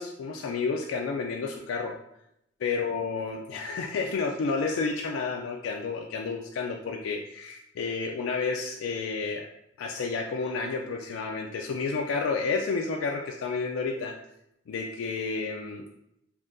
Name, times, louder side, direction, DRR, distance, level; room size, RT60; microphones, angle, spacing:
voice 1, 0.0-1.9 2.6-9.5 9.8-14.1 14.7-15.8, left 4 dB, 90° left, 1 dB, 0.3 m, -30 dB
3.5 x 2.7 x 2.5 m, 0.79 s
head